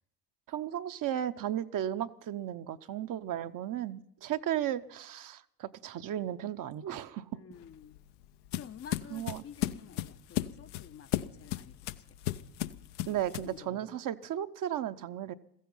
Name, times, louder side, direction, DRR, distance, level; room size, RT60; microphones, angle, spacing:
voice 1, 0.5-7.4 9.1-9.4 13.1-15.3, right 11 dB, 45° right, 0.8 m, -35 dB
voice 2, 7.3-8.0 8.5-11.1 11.4-12.0 13.0-13.8, left 8 dB, 30° left, 0.6 m, -50 dB
sound 1, 7.5-13.6, left 14 dB, 80° left, 0.8 m, -36 dB
16.0 x 14.5 x 5.6 m
hypercardioid pair, 75°, 45 cm